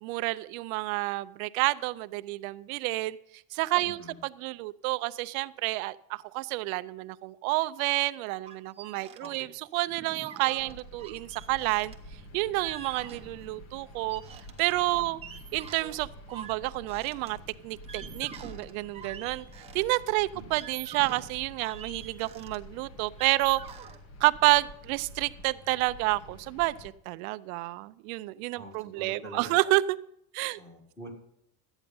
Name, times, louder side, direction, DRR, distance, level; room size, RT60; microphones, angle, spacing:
voice 1, 0.0-3.2 3.5-11.9 12.3-14.2 14.6-15.2 15.5-17.4 17.6-19.4 19.7-23.6 24.2-30.0 30.3-30.6, right 20 dB, 80° right, 14 dB, 0.5 m, -29 dB
voice 2, 3.8-4.2 9.2-9.5 15.0-15.3 28.6-29.6 30.5-31.1, right 1 dB, 10° left, 2 dB, 1.9 m, -46 dB
sound 1, 8.4-9.3 9.5-9.6 9.9-13.7 13.9-19.9 20.4-24.0, right 7 dB, 15° right, 0.8 m, -46 dB
sound 2, 10.6-26.9, left 1 dB, 40° left, 1.1 m, -49 dB
13.0 x 9.0 x 5.3 m, 0.75 s
cardioid pair, 160°, 42 cm